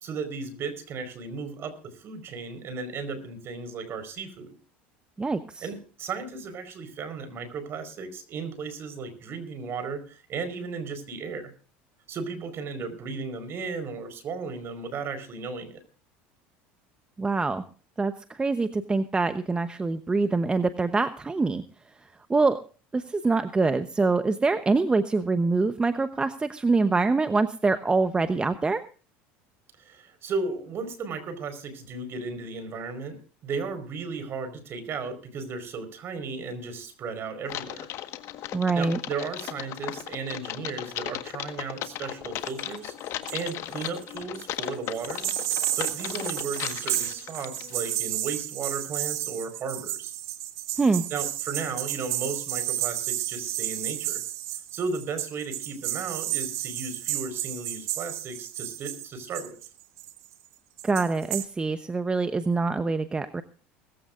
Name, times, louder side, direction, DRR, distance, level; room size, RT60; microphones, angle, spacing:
voice 1, 0.0-4.5 5.6-11.5 12.1-15.8 29.8-37.9 38.7-42.9 43.3-45.3 45.8-50.1 51.1-54.2 54.7-59.6, right 4 dB, 45° right, 12 dB, 4.8 m, -35 dB
voice 2, 5.2-5.7 17.2-17.6 18.0-21.6 22.3-22.6 22.9-28.8 38.5-39.0 50.8-51.0 60.8-63.4, right 3 dB, 15° right, 10 dB, 1.0 m, -25 dB
Typing, 37.5-47.9, left 13 dB, 55° left, 1.5 m, -36 dB
sound 1, 42.5-43.5 43.8-44.4 44.9-60.3 60.8-61.5, right 14 dB, 60° right, 1.6 m, -32 dB
20.0 x 15.0 x 2.6 m, 0.36 s
supercardioid pair, 100°, 6 cm